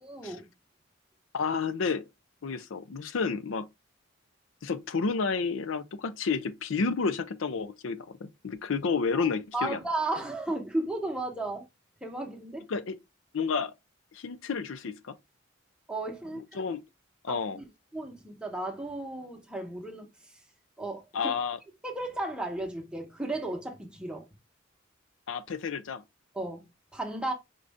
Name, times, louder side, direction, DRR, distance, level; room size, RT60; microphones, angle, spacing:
voice 1, 0.0-0.4 9.2-11.7 12.0-12.7 15.9-16.6 17.3-17.6 17.9-20.1 20.8-21.3 21.8-24.3 26.3-27.3, right 2 dB, 5° right, 1.0 m, -34 dB
voice 2, 1.3-2.1 2.4-3.7 4.6-9.8 12.7-13.0 13.3-13.7 14.1-15.1 16.3-16.8 17.2-17.6 21.1-21.6 25.3-26.0, left 5 dB, 75° left, 0.5 m, -30 dB
5.2 x 2.6 x 3.4 m
head